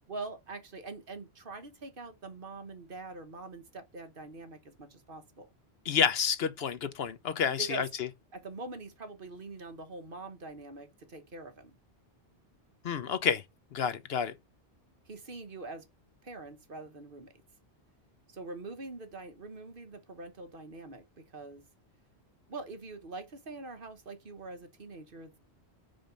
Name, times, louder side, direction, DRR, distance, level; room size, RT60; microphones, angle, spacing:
voice 1, 0.1-5.5 7.6-7.9 8.3-11.8 15.1-15.8 16.2-17.3 18.3-21.7 22.5-25.4, right 3 dB, 50° right, 1.4 m, -44 dB
voice 2, 5.9-7.9 12.8-13.4 13.7-14.3, left 7 dB, 65° left, 1.0 m, -29 dB
5.6 x 5.1 x 5.2 m
omnidirectional pair, 1.1 m